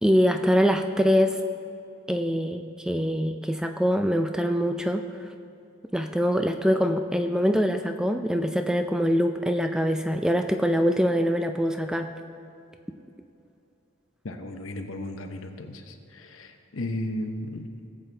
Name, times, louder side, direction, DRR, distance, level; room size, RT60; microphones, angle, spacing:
voice 1, 0.0-1.4 2.1-5.0 5.9-12.1, equal, 5° right, 6 dB, 0.3 m, -24 dB
voice 2, 14.2-17.7, left 1 dB, 85° left, 6 dB, 0.9 m, -35 dB
18.0 x 7.7 x 3.4 m, 2.7 s
head